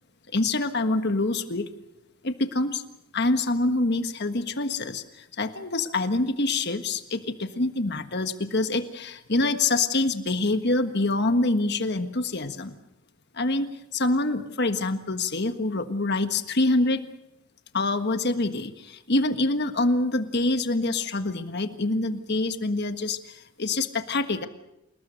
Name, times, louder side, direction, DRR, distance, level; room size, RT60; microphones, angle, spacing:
voice 1, 0.3-1.7 2.2-2.8 3.1-12.7 13.3-17.0 17.7-24.5, left 2 dB, 50° left, 8 dB, 1.5 m, -26 dB
28.5 x 19.5 x 6.5 m, 0.83 s
head